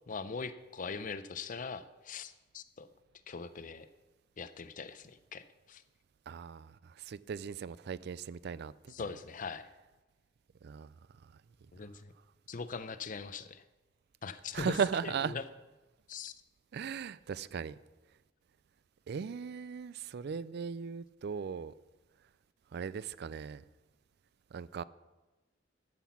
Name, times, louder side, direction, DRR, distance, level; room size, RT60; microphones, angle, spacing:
voice 1, 0.1-2.9 3.3-3.9 4.4-5.8 8.9-9.7 11.7-12.1 12.5-13.6 14.2-14.8 15.0-15.4 16.1-16.3, left 4 dB, 45° left, 0.6 m, -41 dB
voice 2, 6.3-9.1 10.6-10.9 11.2-11.4 14.5-15.3 16.7-17.8 19.1-21.7 22.7-23.6 24.5-24.8, right 6 dB, 60° right, 0.4 m, -37 dB
13.0 x 5.9 x 7.1 m
head